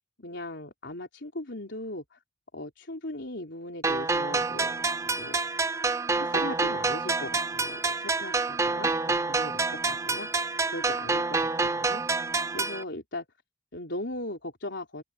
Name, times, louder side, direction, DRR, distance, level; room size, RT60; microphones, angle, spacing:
voice 1, 0.2-2.2 2.5-4.8 5.2-5.4 6.1-10.3 10.7-12.0 12.5-13.2 13.7-15.0, left 1 dB, 65° left, 3.7 m, -38 dB
sound 1, 3.8-12.8, right 3 dB, 15° right, 0.6 m, -28 dB
open air
head